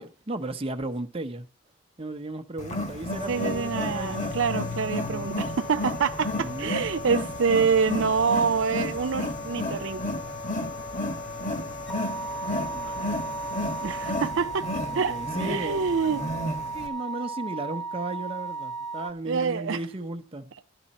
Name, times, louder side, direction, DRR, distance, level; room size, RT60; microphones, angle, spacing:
voice 1, 0.0-1.5 2.0-5.3 6.3-6.8 12.7-13.1 14.9-16.2 16.7-20.5, right 2 dB, 30° right, 0.9 m, -35 dB
Wild animals, 2.6-16.9, left 1 dB, 40° left, 1.7 m, -33 dB
sound 1, 3.1-14.3, left 3 dB, 85° left, 2.9 m, -39 dB
voice 2, 3.3-10.0 13.8-16.2 19.2-19.8, right 5 dB, 70° right, 0.5 m, -26 dB
sound 2, 11.9-19.1, right 4 dB, 5° left, 0.9 m, -35 dB
12.5 x 10.0 x 4.2 m
head